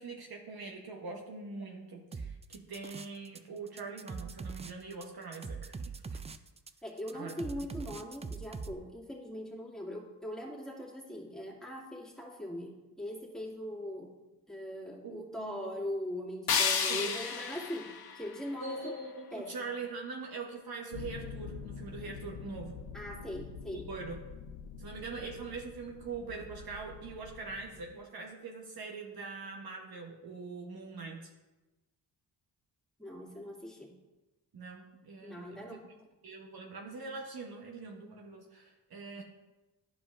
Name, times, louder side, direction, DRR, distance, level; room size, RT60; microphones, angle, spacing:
voice 1, 0.0-6.2 7.1-7.4 15.0-15.7 16.9-17.2 18.6-22.8 23.7-24.2 24.8-31.3 34.5-35.8 36.2-39.2, right 4 dB, 55° right, 1 dB, 1.1 m, -43 dB
sound 1, 2.1-3.4 3.7-8.7, right 4 dB, 15° right, 0.3 m, -42 dB
voice 2, 6.8-14.2 14.5-19.0 19.3-19.6 22.9-23.9 33.0-34.0 35.2-35.8, left 1 dB, ahead, -4 dB, 2.2 m, -41 dB
sound 2, 16.5-19.5, left 6 dB, 55° left, 1.0 m, -33 dB
sound 3, 20.9-28.0, left 6 dB, 80° left, 0.6 m, -46 dB
11.0 x 5.0 x 2.5 m, 1.1 s
supercardioid pair, 60°, 43 cm